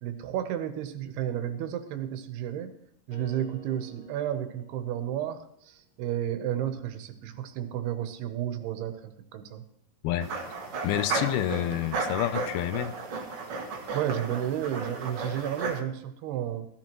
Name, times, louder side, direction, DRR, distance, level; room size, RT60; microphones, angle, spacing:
voice 1, 0.0-2.7 3.1-9.6 13.9-16.7, right 11 dB, 80° right, 9 dB, 2.9 m, -32 dB
sound 1, 3.1-5.4, right 4 dB, 45° left, 3.5 m, -52 dB
sound 2, 10.2-15.8, right 4 dB, 60° right, 1.5 m, -34 dB
voice 2, 10.8-12.9, left 13 dB, 80° left, 12 dB, 2.4 m, -28 dB
16.0 x 13.5 x 3.0 m, 0.73 s
omnidirectional pair, 4.5 m